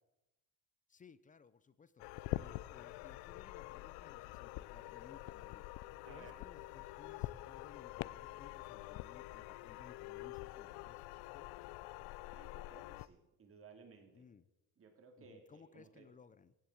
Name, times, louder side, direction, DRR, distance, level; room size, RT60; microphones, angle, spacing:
voice 1, 0.9-5.6 6.1-11.7 14.1-14.5 15.2-16.5, left 6 dB, 20° left, 16 dB, 0.5 m, -61 dB
sound 1, 2.0-13.1, left 18 dB, 80° left, 0.6 m, -46 dB
voice 2, 12.3-14.2 14.8-16.1, right 5 dB, 35° right, 4 dB, 2.7 m, -59 dB
15.5 x 7.5 x 8.4 m, 1.0 s
cardioid pair, 125°, 38 cm